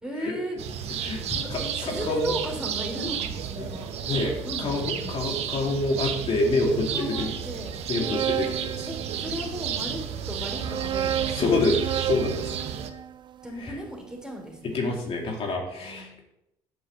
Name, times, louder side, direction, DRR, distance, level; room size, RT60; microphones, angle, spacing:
voice 1, 0.0-0.6 1.2-5.2 6.9-7.7 8.9-11.6 13.4-14.8 15.8-16.2, equal, 5° right, 1 dB, 3.1 m, -36 dB
sound 1, 0.6-12.9, right 8 dB, 65° right, 1.1 m, -32 dB
voice 2, 1.0-2.3 3.6-3.7 4.0-4.3 4.6-7.3 7.9-8.9 11.3-12.5 13.6-13.7 14.6-16.2, left 2 dB, 55° left, 0 dB, 2.5 m, -27 dB
sound 2, 7.7-9.6 10.4-14.6, right 10 dB, 40° right, 0.4 m, -33 dB
8.5 x 5.4 x 7.5 m, 0.81 s
supercardioid pair, 70°, 12 cm